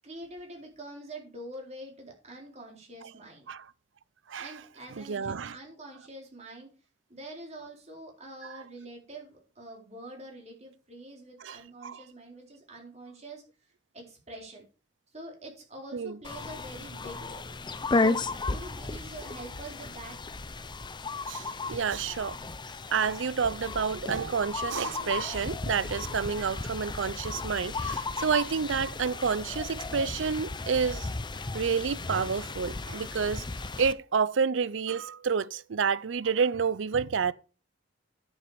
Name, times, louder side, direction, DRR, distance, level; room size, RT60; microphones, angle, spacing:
voice 1, 0.0-3.5 4.4-6.7 7.1-13.4 13.9-14.6 15.1-17.5 17.9-18.2 18.5-20.2, right 1 dB, 35° right, 4.1 m, -45 dB
voice 2, 4.9-5.6 8.4-8.6 11.4-12.0 15.9-16.2 21.3-22.4 22.9-31.1 31.5-33.4 33.8-37.3, right 6 dB, 80° right, 0.5 m, -29 dB
sound 1, 16.2-33.9, left 3 dB, 25° left, 0.6 m, -34 dB
10.5 x 7.2 x 5.0 m
head